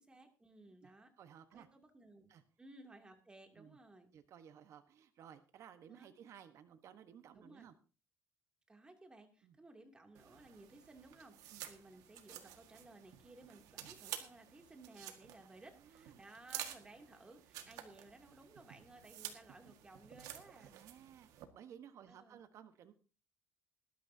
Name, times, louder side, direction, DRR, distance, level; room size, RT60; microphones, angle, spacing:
voice 1, 0.0-1.1 1.5-2.3 2.6-4.1 5.9-6.2 7.3-7.7 8.7-20.7 22.1-22.4, right 2 dB, 15° right, 4 dB, 2.7 m, -58 dB
voice 2, 0.8-1.7 2.3-2.4 3.6-3.8 4.1-7.7 9.4-9.6 11.5-11.7 15.8-16.2 17.6-17.7 20.7-22.9, right 9 dB, 55° right, 9 dB, 1.2 m, -57 dB
sound 1, 10.1-21.4, right 11 dB, 80° right, 1.7 m, -51 dB
19.5 x 12.0 x 2.8 m, 0.35 s
cardioid pair, 115°, 6 cm